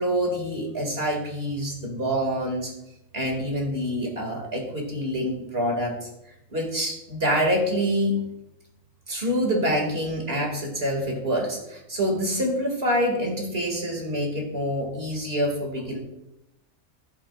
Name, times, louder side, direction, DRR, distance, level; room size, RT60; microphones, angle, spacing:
voice 1, 0.0-2.7 3.1-6.1 6.5-8.2 9.1-16.0, equal, 45° right, 1 dB, 2.4 m, -26 dB
14.0 x 12.0 x 2.4 m, 0.85 s
omnidirectional pair, 1.4 m